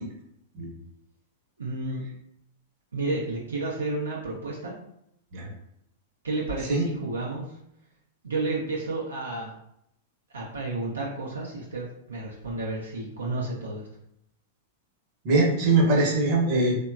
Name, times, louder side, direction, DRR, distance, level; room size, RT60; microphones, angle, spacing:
voice 1, 1.6-2.0 2.9-4.7 6.2-7.4 8.2-9.5 10.3-13.8, right 2 dB, 85° right, -3 dB, 0.4 m, -31 dB
voice 2, 15.2-16.8, right 2 dB, 45° right, -1 dB, 0.8 m, -22 dB
2.9 x 2.1 x 2.3 m, 0.76 s
hypercardioid pair, 100°, 0 cm